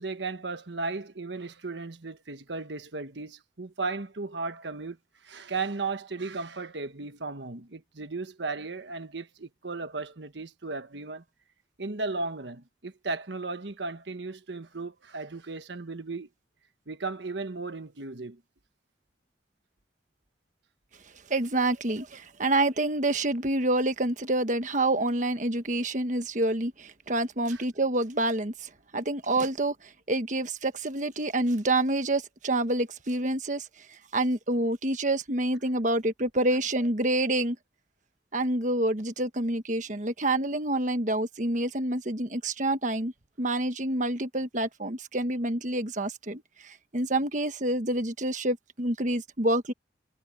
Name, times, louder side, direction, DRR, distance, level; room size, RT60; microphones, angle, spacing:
voice 1, 0.0-5.0 5.2-11.2 11.8-16.3 16.9-18.4 27.5-27.6, right 3 dB, 75° right, 1.3 m, -35 dB
voice 2, 21.3-37.6 38.3-43.1 43.4-49.7, right 2 dB, 45° right, 1.4 m, -27 dB
head